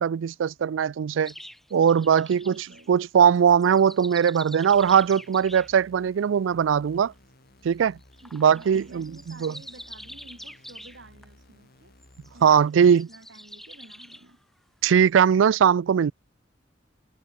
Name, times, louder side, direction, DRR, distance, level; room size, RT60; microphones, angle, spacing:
voice 1, 0.0-1.3 1.7-7.1 7.6-8.0 8.3-9.5 12.4-13.1 14.8-16.1, right 7 dB, 85° right, 0.3 m, -20 dB
sound 1, 1.2-2.9 3.4-5.7 8.0-11.2 12.0-14.3 15.1-15.3, equal, ahead, 2.6 m, -45 dB
voice 2, 2.1-2.9 8.2-12.0 12.3-14.4, right 2 dB, 65° right, 2.9 m, -51 dB
sound 2, 4.7-12.7, left 1 dB, 55° left, 3.8 m, -56 dB
head